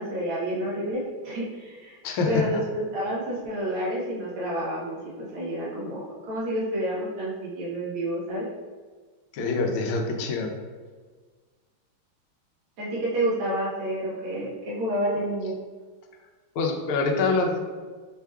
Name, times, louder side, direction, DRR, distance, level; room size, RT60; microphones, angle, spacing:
voice 1, 0.0-2.0 2.3-8.4 12.8-15.5, right 1 dB, 85° right, -5 dB, 2.1 m, -29 dB
voice 2, 2.0-2.4 9.3-10.5 16.6-17.6, left 3 dB, 85° left, 3 dB, 1.5 m, -25 dB
4.9 x 4.5 x 2.3 m, 1.5 s
omnidirectional pair, 2.3 m